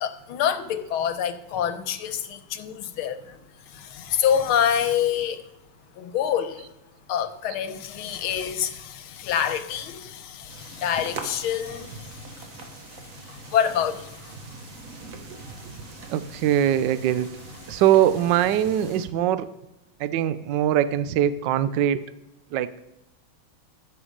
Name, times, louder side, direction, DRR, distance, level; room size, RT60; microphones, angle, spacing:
voice 1, 0.0-5.4 6.0-6.7 7.1-16.1 17.6-17.8, left 9 dB, 80° left, 10 dB, 1.7 m, -28 dB
sound 1, 10.5-19.1, right 3 dB, 45° right, 1.4 m, -42 dB
voice 2, 16.1-17.3 17.7-19.5 20.0-22.0 22.5-22.7, right 11 dB, 75° right, 14 dB, 1.0 m, -22 dB
13.5 x 7.1 x 5.0 m, 0.96 s
omnidirectional pair, 2.3 m